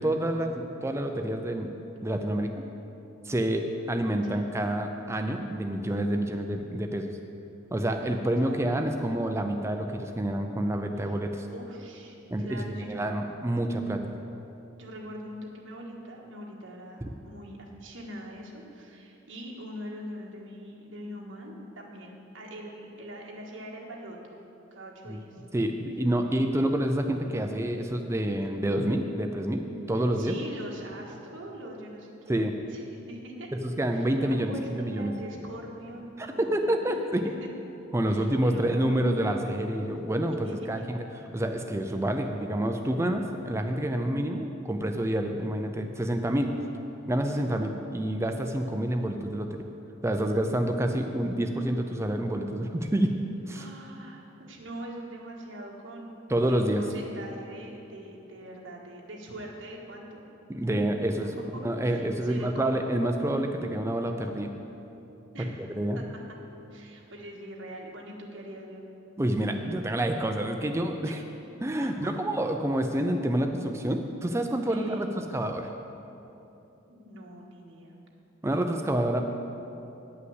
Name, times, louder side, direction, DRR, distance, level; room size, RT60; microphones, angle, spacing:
voice 1, 0.0-1.7 2.0-2.7 3.2-7.1 7.7-11.5 12.3-12.6 12.9-14.0 17.0-17.1 25.1-25.2 25.5-30.4 32.3-32.5 33.6-35.1 36.2-37.2 37.9-41.0 41.3-46.5 47.1-49.6 50.0-53.1 53.5-53.7 56.3-56.8 60.5-61.3 61.6-64.5 65.7-66.0 69.2-71.2 71.6-75.7 78.4-79.2, right 1 dB, 15° right, 5 dB, 0.4 m, -28 dB
voice 2, 8.4-8.7 10.9-11.2 11.5-13.2 14.8-24.2 24.7-25.4 25.8-26.1 29.9-33.5 33.9-36.9 37.2-37.5 38.1-39.0 40.5-40.8 47.2-47.4 53.5-56.2 56.5-60.3 61.1-62.8 65.3-65.6 65.9-66.2 66.7-68.8 71.0-71.2 72.0-72.1 74.7-75.1 76.9-77.9, right 1 dB, 65° right, -2 dB, 1.6 m, -43 dB
9.4 x 5.6 x 7.9 m, 2.9 s
head